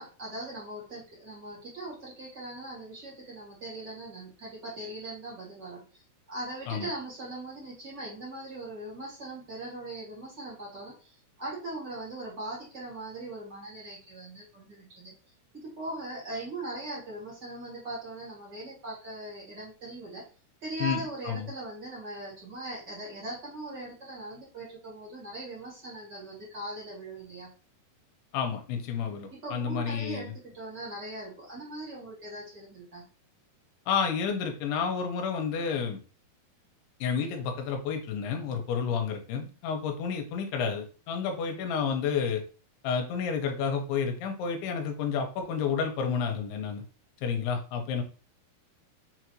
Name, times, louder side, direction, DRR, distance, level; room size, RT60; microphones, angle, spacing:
voice 1, 0.0-15.1 15.5-20.2 20.6-27.5 29.3-33.0, right 1 dB, 45° right, -6 dB, 1.3 m, -40 dB
voice 2, 20.8-21.5 28.3-30.3 33.9-36.0 37.0-42.4 42.8-46.8 47.2-48.0, left 6 dB, 80° left, 4 dB, 2.7 m, -30 dB
6.3 x 2.5 x 3.0 m, 0.36 s
omnidirectional pair, 4.8 m